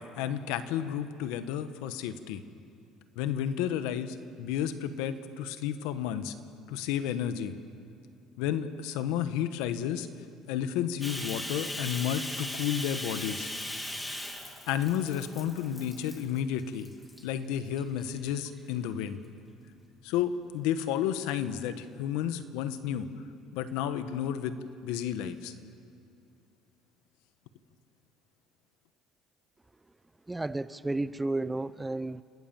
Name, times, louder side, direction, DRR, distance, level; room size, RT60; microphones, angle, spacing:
voice 1, 0.2-2.4 3.2-6.3 6.7-7.5 8.4-10.1 10.5-13.5 14.7-16.9 17.2-19.2 20.0-23.1 23.5-24.5 24.8-25.5, left 9 dB, 90° left, 11 dB, 1.1 m, -31 dB
Bathtub (filling or washing), 11.0-16.4 16.8-17.2 17.8-18.6, left 1 dB, 10° left, 2.3 m, -38 dB
voice 2, 30.3-32.2, right 2 dB, 10° right, 16 dB, 0.5 m, -32 dB
28.0 x 18.5 x 7.4 m, 2.5 s
cardioid pair, 125°, 0 cm